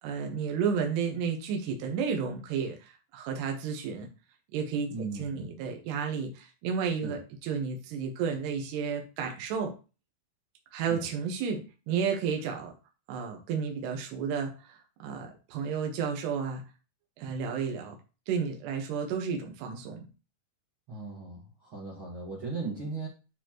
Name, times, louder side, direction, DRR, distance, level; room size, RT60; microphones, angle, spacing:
voice 1, 0.0-4.1 4.5-9.7 10.7-12.7 13.1-16.6 17.2-18.0 18.3-20.1, right 6 dB, 80° right, 3 dB, 3.3 m, -32 dB
voice 2, 4.9-5.5 7.0-7.2 10.9-11.1 20.9-23.1, right 4 dB, 50° right, -3 dB, 1.5 m, -38 dB
12.0 x 4.3 x 3.0 m, 0.32 s
omnidirectional pair, 4.8 m